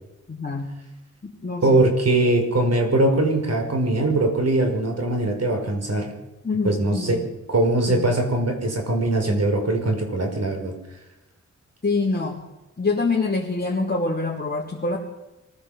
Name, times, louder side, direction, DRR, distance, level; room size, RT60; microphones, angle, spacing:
voice 1, 0.3-0.7 1.2-1.8 6.4-7.2 7.9-8.1 11.8-12.4 12.8-15.0, left 3 dB, 30° left, -4 dB, 3.5 m, -25 dB
voice 2, 1.6-6.1 6.6-7.2 7.5-10.7, right 2 dB, 55° right, 4 dB, 5.4 m, -21 dB
24.5 x 16.0 x 7.4 m, 1.0 s
wide cardioid pair, 85°, 30 cm